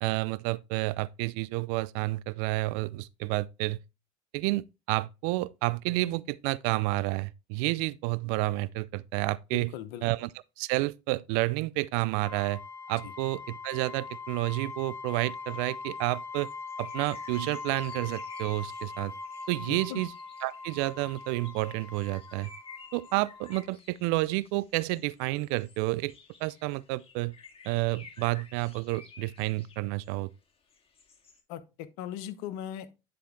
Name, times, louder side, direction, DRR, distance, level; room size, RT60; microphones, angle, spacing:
voice 1, 0.0-3.8 4.3-9.7 10.0-10.3 10.6-12.6 12.9-16.5 16.8-19.1 19.5-20.1 20.4-22.5 22.9-26.1 26.4-27.3 27.7-30.3, right 20 dB, 65° right, 0.5 m, -30 dB
voice 2, 9.5-10.0 13.0-13.1 19.7-20.0 31.5-32.9, left 11 dB, 70° left, 0.9 m, -39 dB
sound 1, 12.2-23.7, left 4 dB, 15° left, 1.3 m, -42 dB
sound 2, 15.3-15.7 16.0-16.1 16.3-30.2 30.7-31.4, left 4 dB, 30° left, 2.1 m, -53 dB
10.5 x 4.3 x 3.6 m
hypercardioid pair, 65°, 20 cm